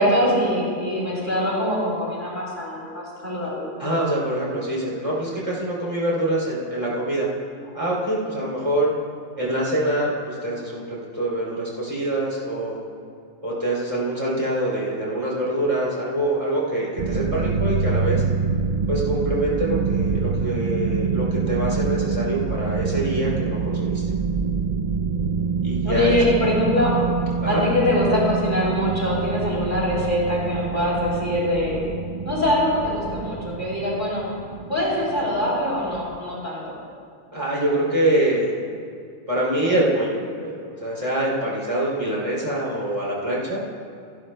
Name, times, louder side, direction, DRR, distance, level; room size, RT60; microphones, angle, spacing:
voice 1, 0.0-3.7 25.8-26.9 27.5-31.8 32.2-34.2 34.7-36.6, left 1 dB, 35° left, -5 dB, 3.2 m, -23 dB
voice 2, 3.8-7.3 7.7-8.9 9.4-12.8 13.4-18.2 18.9-24.0 25.6-26.6 27.4-27.7 37.3-38.5 39.3-43.6, right 1 dB, 25° right, -6 dB, 3.0 m, -25 dB
sound 1, 17.0-36.2, right 5 dB, 55° right, 0.4 m, -26 dB
27.0 x 12.0 x 2.2 m, 2.4 s
omnidirectional pair, 1.4 m